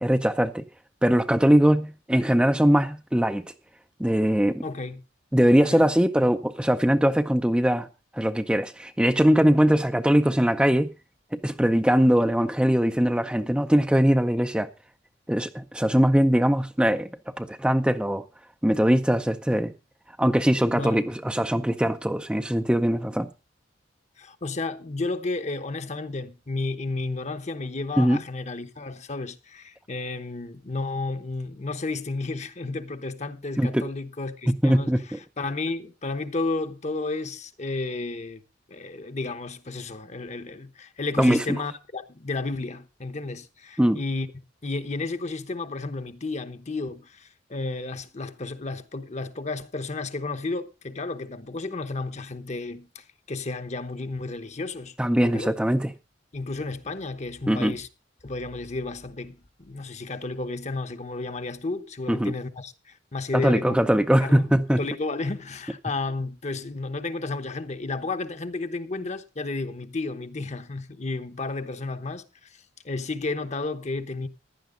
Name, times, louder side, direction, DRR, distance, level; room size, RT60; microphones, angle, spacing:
voice 1, 0.0-0.7 1.0-3.4 4.0-4.6 5.3-7.9 8.1-10.9 11.3-14.7 15.3-17.1 17.4-18.2 18.6-19.7 20.2-23.3 28.0-28.2 33.6-33.9 34.5-35.2 41.2-41.4 43.8-44.0 55.0-55.9 57.5-57.8 62.1-62.3 63.3-64.8, equal, 5° right, 0.5 m, -21 dB
voice 2, 4.6-5.0 5.6-5.9 20.7-21.0 24.2-34.9 35.4-38.4 38.7-44.3 44.6-54.9 55.2-55.5 56.3-57.9 58.2-63.8 64.2-74.3, left 3 dB, 35° left, 1.0 m, -32 dB
15.5 x 11.0 x 3.8 m
head